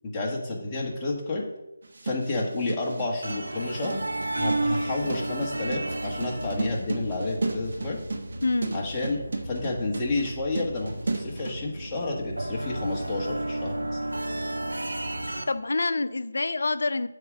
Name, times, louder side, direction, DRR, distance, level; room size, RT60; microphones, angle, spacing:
voice 1, 0.0-1.4 2.0-4.0 4.4-8.0 8.7-14.0, left 2 dB, 15° left, -3 dB, 1.4 m, -30 dB
sound 1, 1.8-11.6, right 3 dB, 60° right, 1.1 m, -34 dB
sound 2, 3.2-15.5, right 1 dB, 80° right, 0.9 m, -33 dB
voice 2, 15.5-17.1, left 3 dB, 65° left, 12 dB, 0.5 m, -26 dB
7.8 x 3.7 x 6.2 m, 0.92 s
figure-of-eight pair, 160°, 0 cm